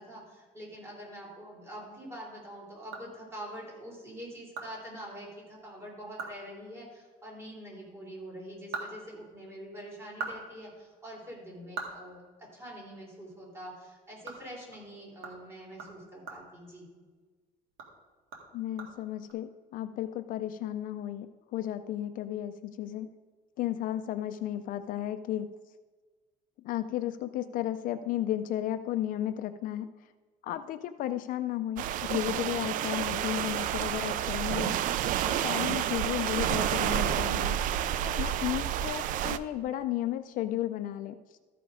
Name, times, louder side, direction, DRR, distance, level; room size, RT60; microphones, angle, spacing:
voice 1, 0.0-16.9, equal, 15° right, -4 dB, 3.3 m, -45 dB
sound 1, 2.5-3.7 4.1-4.2 4.5-4.7 5.0-5.1 5.6-5.7 6.0-6.4 6.7-6.8 8.3-9.6 10.0-12.9 13.2-13.4 13.7-17.3 17.7-19.3, right 5 dB, 90° right, 2.0 m, -43 dB
voice 2, 18.5-23.1 23.6-25.5 26.6-29.9 30.4-35.0 35.3-37.6 38.0-41.4, left 12 dB, 60° left, 10 dB, 0.4 m, -34 dB
sound 2, 31.8-39.4, right 11 dB, 55° right, 0.4 m, -30 dB
13.5 x 5.0 x 5.0 m, 1.4 s
cardioid pair, 155°, 16 cm